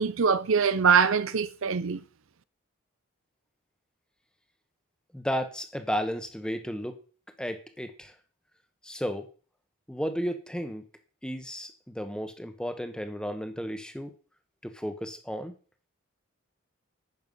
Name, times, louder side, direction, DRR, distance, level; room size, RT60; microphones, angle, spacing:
voice 1, 0.0-2.0, right 6 dB, 65° right, 0.6 m, -23 dB
voice 2, 5.1-7.0 7.4-8.1 8.8-9.3 9.9-10.8 11.2-14.1 14.6-15.5, equal, 5° left, 1.2 m, -33 dB
11.0 x 8.1 x 5.4 m
head